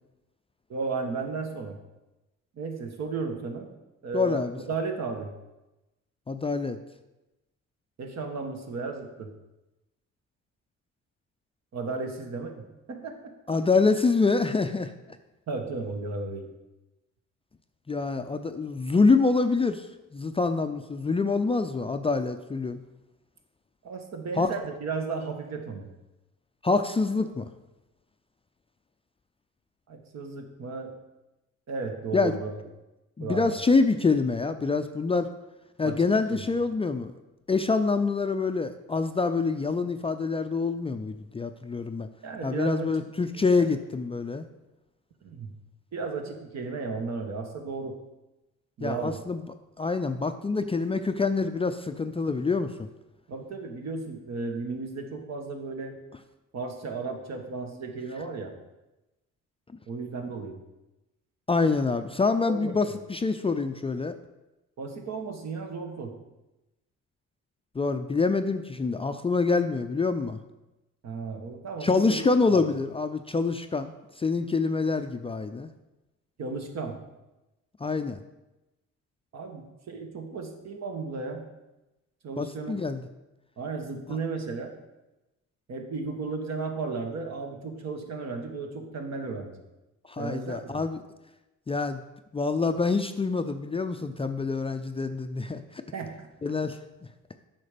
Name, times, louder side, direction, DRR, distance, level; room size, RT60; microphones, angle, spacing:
voice 1, 0.7-1.8 2.5-3.7 4.0-5.3 8.0-9.3 11.7-13.3 15.5-16.5 23.8-25.9 29.9-30.9 31.7-32.5 33.2-33.5 35.8-36.5 42.2-43.1 43.3-43.7 45.2-45.5 45.9-47.9 48.8-49.2 53.3-56.0 56.5-58.5 59.9-60.6 62.5-62.9 64.8-66.1 71.0-72.6 76.4-76.9 79.3-81.4 82.2-82.8 83.6-84.7 85.7-89.5 90.2-90.8 95.9-96.3, right 4 dB, 60° right, 4 dB, 1.5 m, -34 dB
voice 2, 4.1-4.6 6.3-6.8 13.5-14.9 17.9-19.9 20.1-22.8 24.4-24.5 26.6-27.5 32.1-32.3 33.2-35.3 35.8-37.1 37.5-42.1 42.4-44.4 48.8-49.5 49.8-52.7 61.5-64.1 67.8-70.4 71.8-73.9 74.2-75.7 77.8-78.2 82.4-83.0 84.1-84.2 90.1-91.0 91.7-92.0 92.3-95.8 96.4-96.8, left 4 dB, 20° left, 8 dB, 0.4 m, -26 dB
8.3 x 5.9 x 5.1 m, 1.0 s
cardioid pair, 90°, 30 cm